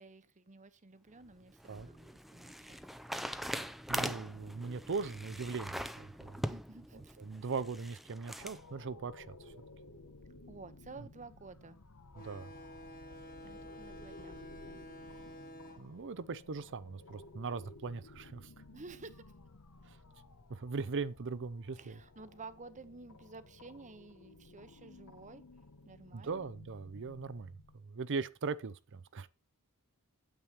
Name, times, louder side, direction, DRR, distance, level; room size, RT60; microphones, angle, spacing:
voice 1, 0.0-2.8 6.5-7.2 10.5-11.8 13.4-14.8 18.7-19.3 21.8-25.4 25.9-26.5, right 3 dB, 35° right, 0.9 m, -52 dB
sound 1, 1.2-8.6, equal, ahead, 0.5 m, -42 dB
voice 2, 3.5-6.5 7.2-9.5 12.2-12.5 15.8-18.4 19.9-20.0 20.5-22.0 26.1-29.3, right 4 dB, 55° right, 0.6 m, -40 dB
sound 2, 8.4-27.8, left 2 dB, 75° left, 1.1 m, -56 dB
sound 3, 12.1-17.3, equal, 40° left, 1.8 m, -51 dB
9.1 x 8.1 x 4.4 m
head